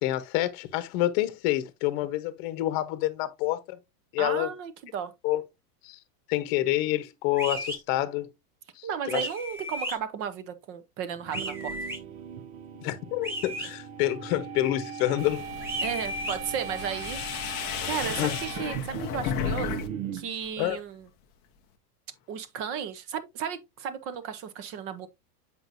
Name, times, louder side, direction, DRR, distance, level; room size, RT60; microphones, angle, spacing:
voice 1, 0.0-3.8 4.1-4.5 5.2-5.4 5.8-6.0 6.3-8.3 8.8-9.3 12.8-15.5 18.2-18.4 20.6-20.8, left 15 dB, 40° left, 1.0 m, -28 dB
voice 2, 4.2-5.1 8.8-11.8 15.8-19.8 20.1-21.1 22.3-25.1, right 7 dB, 30° right, 0.7 m, -34 dB
sound 1, 7.4-7.8 9.1-10.0 11.3-12.0 13.2-13.7 15.6-16.4, equal, 5° right, 1.1 m, -34 dB
sound 2, 11.2-20.3, right 8 dB, 60° right, 0.9 m, -39 dB
sound 3, 15.2-19.9 20.2-20.8, left 8 dB, 20° left, 0.5 m, -34 dB
7.8 x 5.2 x 2.6 m
supercardioid pair, 160°, 47 cm